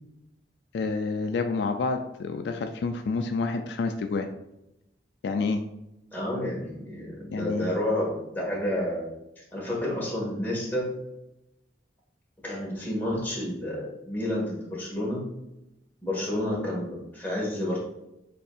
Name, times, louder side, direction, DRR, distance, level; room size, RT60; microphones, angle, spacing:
voice 1, 0.7-4.3 5.2-5.6 7.3-7.7, left 4 dB, 70° left, 6 dB, 0.3 m, -28 dB
voice 2, 6.1-9.0 9.5-11.0 12.4-15.2 16.0-17.8, left 1 dB, 10° left, -5 dB, 1.4 m, -30 dB
6.7 x 2.7 x 2.4 m, 0.89 s
head